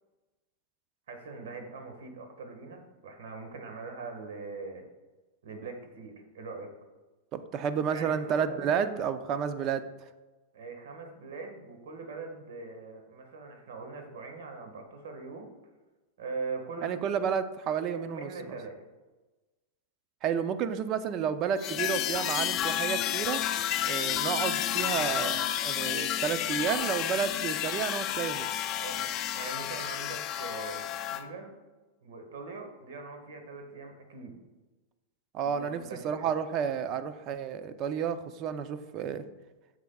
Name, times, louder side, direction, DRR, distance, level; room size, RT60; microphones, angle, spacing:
voice 1, 1.1-4.8 5.4-6.7 7.9-8.9 10.5-15.5 16.2-16.9 17.9-18.8 24.8-25.3 28.8-31.5 32.0-34.3 35.4-36.3, right 4 dB, 75° right, 4 dB, 1.6 m, -42 dB
voice 2, 7.3-9.9 16.8-18.6 20.2-23.4 23.8-28.5 35.3-39.2, right 7 dB, 35° right, 11 dB, 0.5 m, -31 dB
sound 1, 21.6-31.2, left 11 dB, 35° left, 0.5 m, -31 dB
10.5 x 7.3 x 2.3 m, 1.2 s
hypercardioid pair, 135°, 0 cm